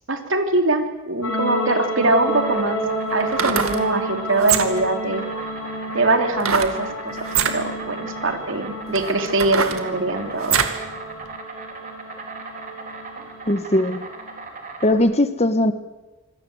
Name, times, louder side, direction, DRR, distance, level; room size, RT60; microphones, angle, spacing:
voice 1, 0.1-2.8 3.1-5.2 5.9-7.2 7.4-10.6, right 2 dB, 60° right, 5 dB, 3.2 m, -22 dB
sound 1, 1.2-14.5, equal, 90° left, 7.5 m, -31 dB
Insect, 1.9-14.9, right 4 dB, 40° right, 3.9 m, -38 dB
sound 2, 2.0-2.1 3.2-3.8 4.4-4.9 6.4-6.8 7.2-7.6 8.3-8.4 8.9-10.8 11.3-11.4, right 7 dB, 80° right, 2.3 m, -23 dB
voice 2, 13.5-14.0 14.8-15.7, left 1 dB, 30° left, 11 dB, 1.3 m, -19 dB
26.5 x 22.0 x 8.0 m, 1.1 s
head